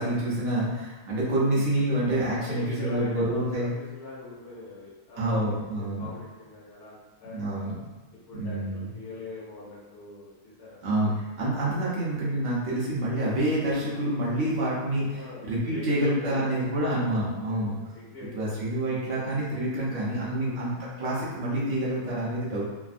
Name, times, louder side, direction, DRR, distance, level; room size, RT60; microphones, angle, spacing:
voice 1, 0.0-3.7 5.2-6.1 7.2-7.9 8.3-8.9 10.8-17.7 18.3-22.7, right 1 dB, 60° right, -7 dB, 1.0 m, -27 dB
voice 2, 2.4-7.6 8.3-10.3 10.6-10.9 15.1-16.7 17.5-18.6 20.3-20.6, left 3 dB, 85° left, -8 dB, 1.3 m, -42 dB
3.3 x 2.0 x 2.4 m, 1.2 s
omnidirectional pair, 1.6 m